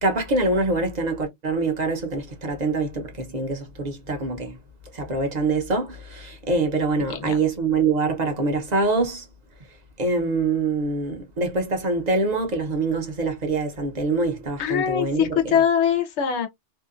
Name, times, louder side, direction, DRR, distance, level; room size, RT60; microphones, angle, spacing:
voice 1, 0.0-4.6 4.9-9.3 10.0-15.6, right 3 dB, 45° right, 0.8 m, -25 dB
voice 2, 14.6-16.5, left 8 dB, 90° left, 0.9 m, -22 dB
2.7 x 2.2 x 2.4 m
omnidirectional pair, 1.1 m